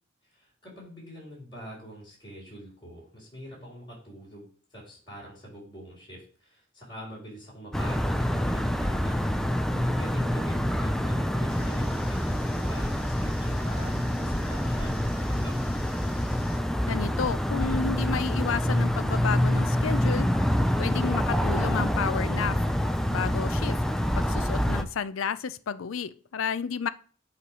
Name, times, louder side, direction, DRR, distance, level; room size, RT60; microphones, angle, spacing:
voice 1, 0.2-15.5, equal, 25° left, 4.2 m, -45 dB
sound 1, 7.7-24.8, equal, ahead, 0.4 m, -26 dB
sound 2, 11.5-16.6, left 3 dB, 50° left, 2.3 m, -52 dB
voice 2, 16.9-20.3 20.8-22.6 23.1-23.8 24.2-26.9, left 6 dB, 80° left, 0.4 m, -31 dB
8.4 x 3.2 x 5.6 m
head